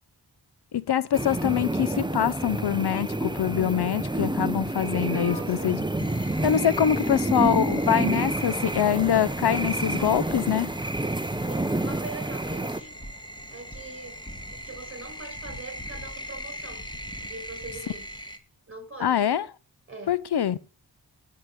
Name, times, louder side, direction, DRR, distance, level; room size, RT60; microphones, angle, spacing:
voice 1, 0.7-5.8 6.4-10.7 19.0-19.5 20.1-20.6, left 9 dB, 70° left, 0.7 m, -24 dB
sound 1, 1.1-12.8, right 2 dB, 10° right, 0.9 m, -28 dB
voice 2, 5.1-5.8 6.9-7.2 11.4-13.0 13.5-14.2 14.6-16.9 17.2-18.1 18.7-19.2 19.9-20.1, right 3 dB, 30° right, 5.5 m, -42 dB
sound 2, 6.0-18.4, equal, 10° left, 2.0 m, -41 dB
10.5 x 7.9 x 6.2 m
cardioid pair, 60°, 41 cm